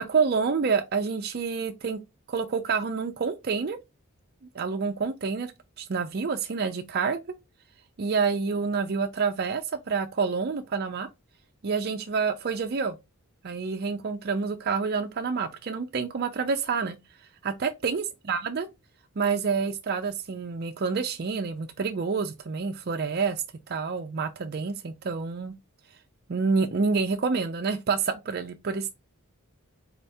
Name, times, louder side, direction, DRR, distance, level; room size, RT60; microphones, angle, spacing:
voice 1, 0.0-2.0 2.3-3.8 4.5-5.5 5.8-7.2 8.0-11.1 11.6-13.0 13.4-17.0 17.4-18.7 19.2-25.5 26.3-28.9, right 5 dB, 45° right, 0.4 m, -28 dB
4.2 x 3.4 x 2.6 m
head